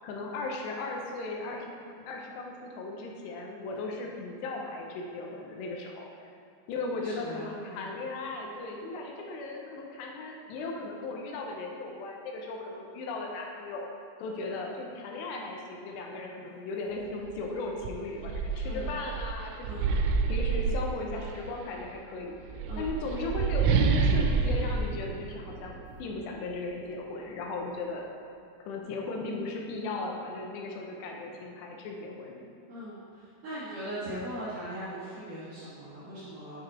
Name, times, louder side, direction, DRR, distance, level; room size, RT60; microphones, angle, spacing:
voice 1, 0.0-1.8 2.1-6.1 6.7-13.9 14.2-19.8 20.3-22.4 22.8-28.1 28.6-32.5, left 3 dB, 80° left, 0 dB, 2.6 m, -37 dB
voice 2, 7.0-7.9 18.6-18.9 19.6-20.0 22.7-22.9 32.7-36.6, right 1 dB, 75° right, -11 dB, 1.9 m, -40 dB
sound 1, 17.3-17.4 17.8-21.5 22.4-26.0, right 4 dB, 90° right, 3.1 m, -28 dB
8.7 x 4.9 x 4.3 m, 2.6 s
omnidirectional pair, 5.7 m